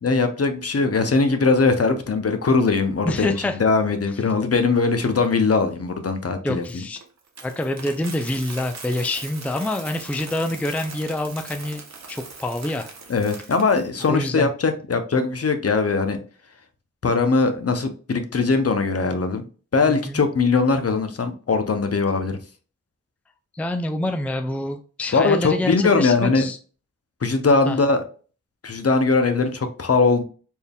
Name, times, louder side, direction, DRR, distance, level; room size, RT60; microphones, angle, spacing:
voice 1, 0.0-3.3 3.6-6.6 13.1-16.2 17.0-19.4 19.7-22.4 25.1-26.5 27.2-28.0 28.6-30.2, left 4 dB, 50° left, 7 dB, 0.7 m, -20 dB
voice 2, 3.1-3.6 6.4-7.0 7.4-11.8 12.1-12.9 14.1-14.5 19.9-20.2 23.5-26.6 27.7-27.8, left 1 dB, 5° left, 7 dB, 0.4 m, -26 dB
Coin (dropping), 6.6-14.1, right 4 dB, 60° right, 0.9 m, -40 dB
4.4 x 3.5 x 2.3 m, 0.38 s
wide cardioid pair, 70°, 30 cm